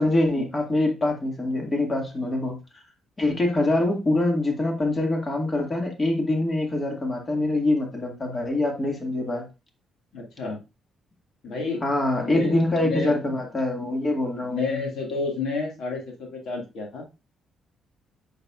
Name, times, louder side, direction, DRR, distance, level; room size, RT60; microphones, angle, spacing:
voice 1, 0.0-2.6 3.2-9.4 11.8-14.8, left 2 dB, 30° left, 2.1 m, -24 dB
voice 2, 10.1-10.6 11.4-11.8 12.2-12.5 12.8-13.1 14.4-17.1, left 3 dB, 75° left, 2.1 m, -30 dB
8.6 x 6.5 x 2.5 m
cardioid pair, 90°, 0 cm